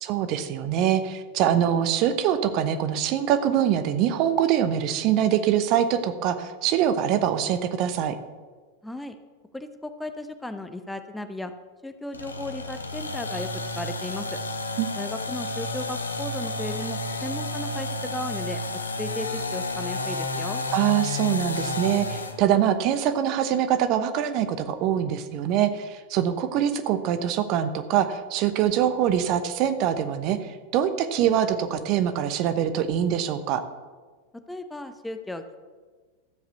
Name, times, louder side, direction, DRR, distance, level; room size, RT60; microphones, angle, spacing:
voice 1, 0.0-8.2 14.8-14.9 20.7-33.6, right 10 dB, 40° right, 10 dB, 1.0 m, -24 dB
voice 2, 8.8-9.2 9.5-11.5 11.8-13.5 13.8-14.4 15.0-18.6 19.0-20.6 34.5-35.6, left 1 dB, 5° left, 8 dB, 0.9 m, -35 dB
sound 1, 12.1-22.4, left 2 dB, 75° left, 1.0 m, -31 dB
13.5 x 7.8 x 6.8 m, 1.4 s
figure-of-eight pair, 90°, 0 cm